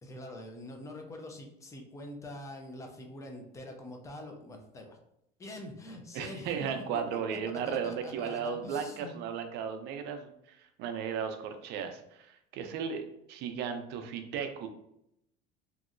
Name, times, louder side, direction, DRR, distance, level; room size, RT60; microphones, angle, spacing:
voice 1, 0.0-5.0 5.4-6.7 7.1-7.4 7.6-9.1, left 1 dB, 15° left, 3 dB, 0.4 m, -45 dB
voice 2, 6.1-14.7, right 7 dB, 55° right, 7 dB, 0.5 m, -35 dB
3.0 x 2.7 x 2.5 m, 0.79 s
cardioid pair, 145°, 20 cm